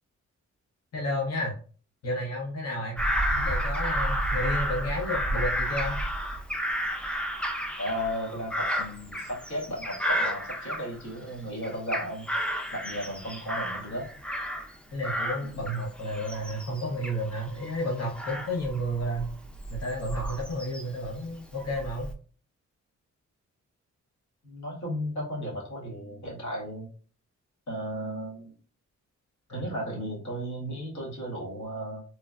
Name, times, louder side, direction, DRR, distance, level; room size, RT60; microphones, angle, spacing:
voice 1, 0.9-1.5 2.0-3.0 3.3-6.0 14.9-19.3 19.7-22.1 29.5-29.7, equal, 55° left, -4 dB, 0.8 m, -31 dB
Bird vocalization bird call bird song / Crow, 3.0-11.3 11.6-14.8 15.0-21.0 21.6-22.1, equal, 5° left, 0.4 m, -31 dB
voice 2, 7.8-12.3 12.7-14.1 15.4-15.6 24.4-26.9 27.7-28.5 29.5-32.0, equal, 75° left, -3 dB, 1.3 m, -35 dB
3.1 x 2.1 x 2.3 m, 0.41 s
cardioid pair, 95°, 30 cm